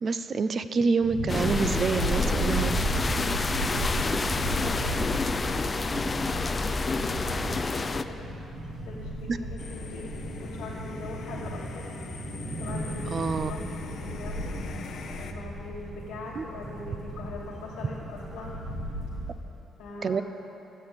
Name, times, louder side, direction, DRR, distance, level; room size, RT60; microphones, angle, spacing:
voice 1, 0.0-2.8 9.3-9.4 13.1-13.5 16.4-16.5 20.0-20.2, right 5 dB, 45° right, 12 dB, 0.4 m, -27 dB
sound 1, 1.0-19.3, right 1 dB, 80° right, 2.0 m, -34 dB
sound 2, 1.3-8.0, left 3 dB, 30° left, 0.4 m, -29 dB
voice 2, 3.9-8.3 8.8-11.9 12.6-13.7 14.0-14.6 15.3-18.6 19.8-20.2, left 3 dB, 90° left, -8 dB, 1.3 m, -42 dB
sound 3, 9.6-15.3, left 6 dB, 65° left, 0.7 m, -43 dB
7.5 x 7.0 x 8.0 m, 3.0 s
cardioid pair, 90°, 0 cm